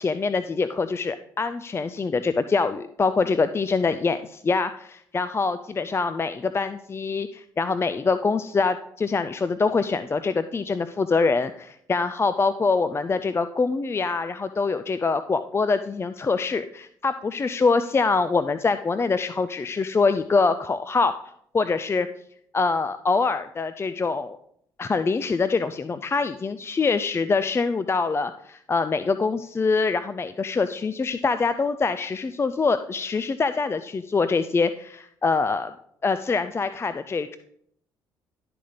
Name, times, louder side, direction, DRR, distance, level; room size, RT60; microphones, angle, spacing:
voice 1, 0.0-21.1 21.5-22.1 22.5-24.4 24.8-35.7 36.0-37.4, left 4 dB, 25° left, 12 dB, 0.4 m, -24 dB
12.0 x 4.0 x 5.0 m, 0.70 s
supercardioid pair, 65°, 9 cm